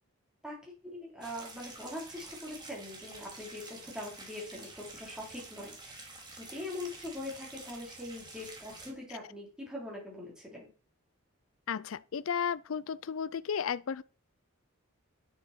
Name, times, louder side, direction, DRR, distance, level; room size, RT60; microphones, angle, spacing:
voice 1, 0.4-6.0 6.3-10.7, left 1 dB, 5° right, 4.4 m, -42 dB
sound 1, 1.2-8.9, right 3 dB, 20° right, 2.4 m, -49 dB
voice 2, 11.7-14.0, left 7 dB, 65° left, 0.4 m, -33 dB
9.6 x 8.2 x 4.6 m
head